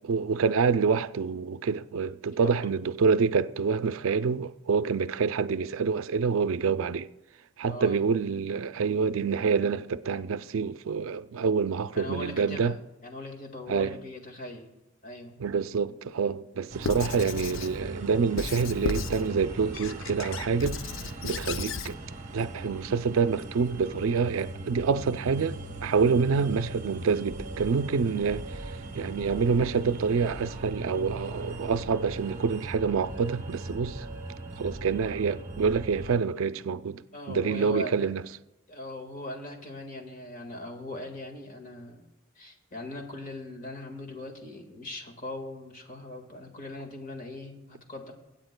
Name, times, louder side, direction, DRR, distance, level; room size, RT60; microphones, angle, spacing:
voice 1, 0.0-7.1 7.6-12.7 13.7-13.9 15.4-20.8 21.2-22.0 22.3-28.5 28.9-34.1 34.6-37.0 37.3-38.2, right 5 dB, 75° right, 0.4 m, -27 dB
voice 2, 7.7-8.0 12.0-14.7 15.0-15.4 37.1-38.1 38.7-42.1 42.4-48.1, left 1 dB, 40° left, 1.7 m, -40 dB
sound 1, 16.7-36.2, right 2 dB, 35° right, 1.0 m, -39 dB
Squeak / Writing, 16.8-17.8 18.4-19.3 19.7-21.9, left 4 dB, 70° left, 0.5 m, -34 dB
24.0 x 8.7 x 2.2 m
head